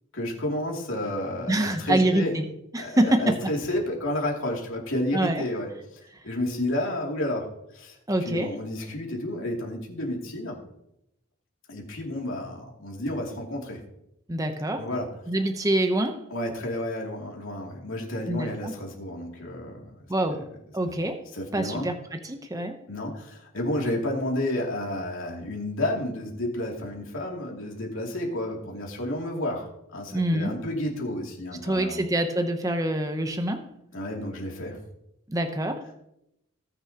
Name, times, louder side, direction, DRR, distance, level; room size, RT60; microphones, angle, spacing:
voice 1, 0.1-2.4 2.7-5.7 6.2-7.5 7.7-8.0 8.2-10.6 11.7-13.8 14.8-15.1 16.3-19.9 21.3-21.9 22.9-32.0 33.9-34.8, left 1 dB, 75° left, -1 dB, 2.7 m, -31 dB
voice 2, 1.5-2.5 2.7-3.4 5.1-5.4 8.1-8.5 14.3-14.9 15.3-16.2 18.3-18.7 20.1-20.5 20.7-21.2 21.5-22.8 30.1-30.5 31.6-33.7 35.3-35.9, right 1 dB, 15° right, 6 dB, 0.8 m, -25 dB
19.0 x 6.9 x 2.9 m, 0.82 s
head